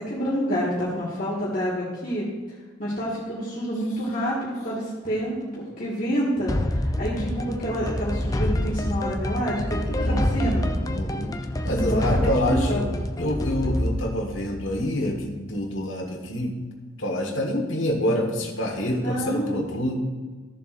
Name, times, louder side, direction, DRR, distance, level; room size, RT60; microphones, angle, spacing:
voice 1, 0.0-2.3 2.8-10.7 11.7-12.9 19.0-19.5, equal, 45° left, -7 dB, 1.8 m, -28 dB
sound 1, 6.5-15.3, left 1 dB, 20° left, 0.5 m, -27 dB
voice 2, 10.0-10.5 10.8-11.3 11.6-12.9 13.2-16.5 17.0-20.0, equal, 85° left, 0 dB, 1.5 m, -27 dB
14.0 x 7.2 x 2.6 m, 1.4 s
head